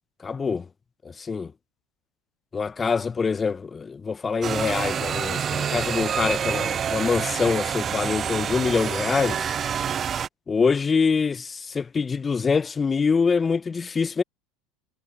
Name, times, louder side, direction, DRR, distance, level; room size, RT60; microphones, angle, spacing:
voice 1, 0.2-0.7 1.0-1.5 2.5-9.5 10.5-14.2, left 5 dB, 25° left, 0.5 m, -25 dB
sound 1, 4.4-10.3, right 8 dB, 35° right, 0.4 m, -27 dB
hypercardioid pair, 90°, 0 cm